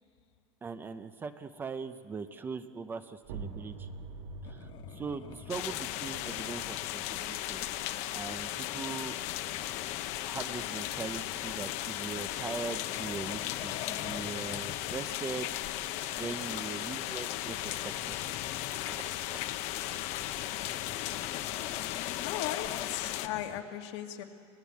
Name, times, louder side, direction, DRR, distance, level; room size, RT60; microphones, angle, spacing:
voice 1, 0.6-3.9 4.4-7.6 8.1-9.2 10.2-15.5 16.2-18.2 18.6-19.4, right 5 dB, 15° right, 10 dB, 0.5 m, -41 dB
sound 1, 3.2-8.8, right 4 dB, 75° right, 2.4 m, -46 dB
sound 2, 4.4-23.6, left 12 dB, 30° left, 0.5 m, -47 dB
sound 3, 5.5-23.3, left 14 dB, 50° left, 0.8 m, -36 dB
voice 2, 22.2-24.2, left 12 dB, 80° left, 3 dB, 2.2 m, -37 dB
25.5 x 19.0 x 8.3 m, 2.2 s
cardioid pair, 175°, 15 cm